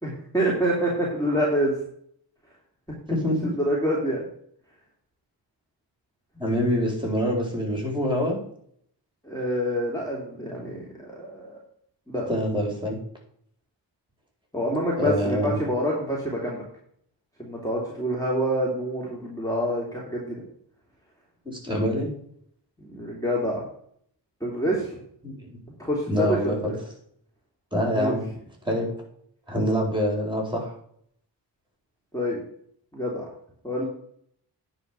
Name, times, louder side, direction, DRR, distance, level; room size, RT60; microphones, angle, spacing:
voice 1, 0.0-1.7 3.6-4.2 9.2-11.6 12.1-12.3 14.5-16.6 17.4-20.4 22.8-23.6 24.4-25.0 25.8-26.8 28.0-28.1 32.1-32.4 32.9-33.3 33.6-33.8, equal, 10° left, -4 dB, 2.9 m, -27 dB
voice 2, 3.1-3.5 6.4-8.4 12.3-13.0 15.0-15.6 21.4-22.1 25.2-25.6 26.1-26.7 27.7-28.2 28.6-28.9 29.5-30.7, equal, 10° right, 0 dB, 4.3 m, -25 dB
9.8 x 5.1 x 6.8 m, 0.65 s
wide cardioid pair, 55°, 45 cm